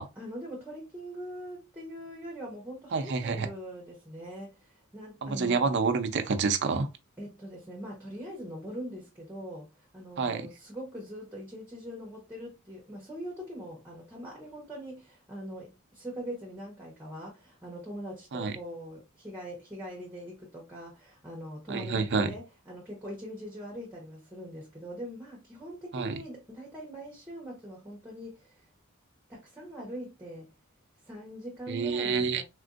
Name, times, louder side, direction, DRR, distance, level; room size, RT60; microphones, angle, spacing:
voice 1, 0.2-5.9 7.2-28.7 29.3-30.5 31.1-32.4, equal, 10° right, 0.9 m, -42 dB
voice 2, 2.9-3.5 5.2-6.9 10.2-10.5 18.3-18.5 21.7-22.3 25.9-26.1 31.7-32.4, right 4 dB, 55° right, 0.5 m, -28 dB
3.6 x 2.5 x 2.4 m
head